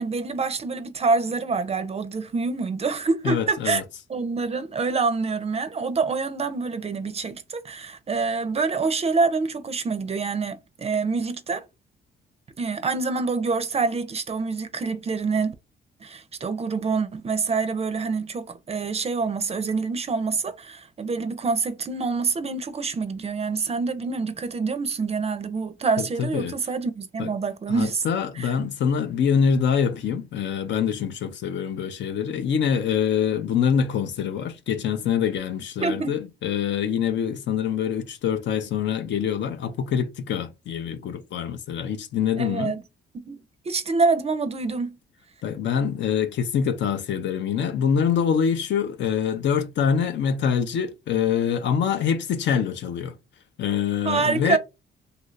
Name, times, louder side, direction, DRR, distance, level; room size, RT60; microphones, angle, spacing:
voice 1, 0.0-3.8 4.1-11.6 12.6-15.5 16.0-28.0 28.4-28.5 35.8-36.2 42.4-42.8 43.1-43.4 43.7-45.0 54.0-54.6, right 4 dB, 30° right, 0.5 m, -26 dB
voice 2, 3.2-3.8 26.0-26.5 27.2-27.3 27.7-42.8 45.4-53.1 53.6-54.6, left 7 dB, 65° left, 0.6 m, -25 dB
2.7 x 2.5 x 3.1 m
cardioid pair, 90°, 20 cm